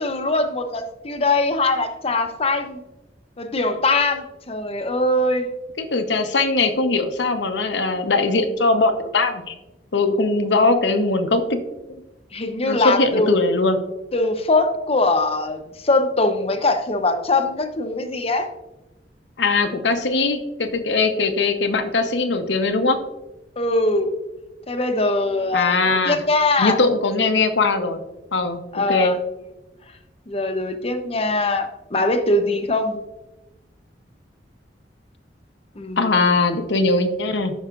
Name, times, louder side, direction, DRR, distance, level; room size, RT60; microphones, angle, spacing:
voice 1, 0.0-2.8 3.4-5.5 12.3-13.3 14.1-18.5 23.6-24.1 24.7-26.8 28.7-29.2 30.3-33.0 35.8-36.4, left 2 dB, 35° left, 7 dB, 0.8 m, -22 dB
voice 2, 5.8-9.5 9.9-11.6 11.9-12.0 12.7-13.8 19.4-23.0 25.5-26.2 26.6-28.0 28.3-29.1 36.0-37.5, left 3 dB, 80° left, 7 dB, 0.9 m, -20 dB
13.0 x 5.6 x 2.5 m, 1.0 s
head